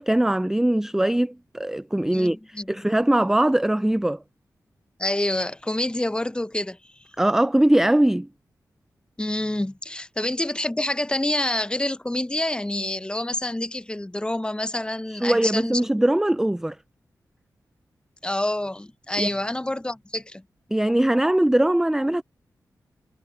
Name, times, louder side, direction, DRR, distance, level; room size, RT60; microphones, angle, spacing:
voice 1, 0.0-4.2 7.2-8.3 15.1-16.8 19.2-19.3 20.7-22.2, right 1 dB, 5° right, 0.3 m, -21 dB
voice 2, 2.1-2.7 5.0-6.8 9.2-15.8 18.2-20.4, left 1 dB, 15° left, 0.8 m, -27 dB
cardioid pair, 65°, 7 cm